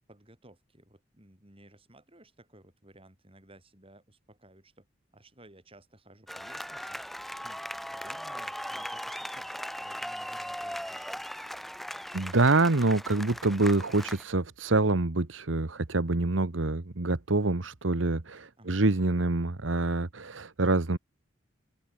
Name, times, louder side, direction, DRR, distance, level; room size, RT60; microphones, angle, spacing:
voice 1, 0.1-4.9 5.1-7.0 7.4-11.1 18.6-18.9, right 1 dB, 30° right, 6.5 m, -56 dB
sound 1, 6.3-14.2, equal, ahead, 2.4 m, -39 dB
voice 2, 12.1-21.0, right 2 dB, 85° right, 1.3 m, -26 dB
open air
head